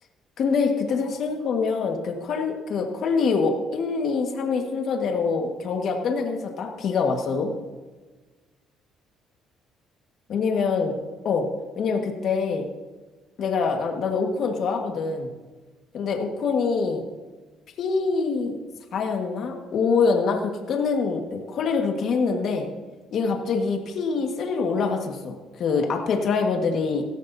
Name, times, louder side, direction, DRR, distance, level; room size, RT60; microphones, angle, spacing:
voice 1, 0.4-7.5 10.3-10.9 11.2-11.5 11.8-12.6 13.4-15.3 15.9-17.0 17.8-18.6 18.9-22.7 23.1-27.0, left 5 dB, 55° left, 3 dB, 1.6 m, -25 dB
17.5 x 13.5 x 2.7 m, 1.3 s
cardioid pair, 120°, 0 cm